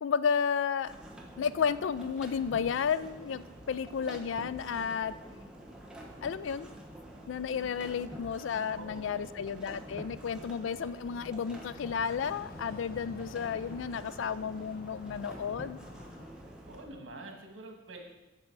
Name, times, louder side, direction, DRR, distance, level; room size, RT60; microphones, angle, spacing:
voice 1, 0.0-0.9 1.4-5.1 6.2-6.7 7.3-15.8, left 6 dB, 75° left, 16 dB, 0.4 m, -32 dB
sound 1, 0.8-16.8, right 1 dB, 5° right, 1.0 m, -48 dB
sound 2, 7.7-16.3, left 2 dB, 50° left, 0.8 m, -52 dB
voice 2, 8.7-9.4 10.1-10.2 16.5-18.0, right 2 dB, 90° right, 3 dB, 1.6 m, -47 dB
8.5 x 6.1 x 4.6 m, 1.1 s
head